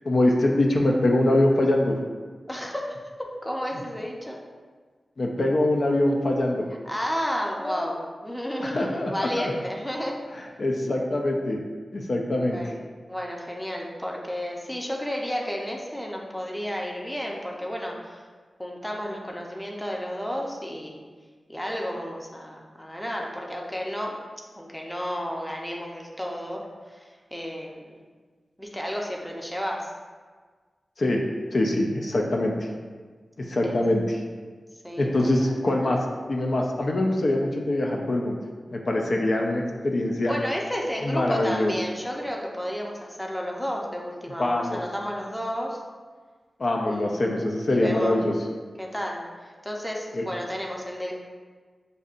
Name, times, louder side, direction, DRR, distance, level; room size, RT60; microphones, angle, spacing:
voice 1, 0.0-1.9 5.2-6.6 7.6-7.9 8.6-9.5 10.6-11.6 11.9-12.6 31.0-31.2 31.5-32.7 33.4-34.2 35.0-38.4 38.7-40.3 41.0-41.7 44.4-44.8 46.6-48.3 50.1-50.2, left 1 dB, 55° left, 0 dB, 0.5 m, -24 dB
voice 2, 2.5-4.4 6.8-8.0 8.2-10.2 12.5-12.8 13.1-18.2 18.6-21.0 21.5-24.2 24.6-28.0 28.6-29.9 33.6-33.8 34.8-35.1 35.4-35.6 40.2-45.8 46.8-47.3 47.7-48.2 48.8-51.1, equal, 5° left, -1 dB, 0.6 m, -32 dB
8.0 x 2.7 x 2.5 m, 1.5 s
wide cardioid pair, 90°, 0 cm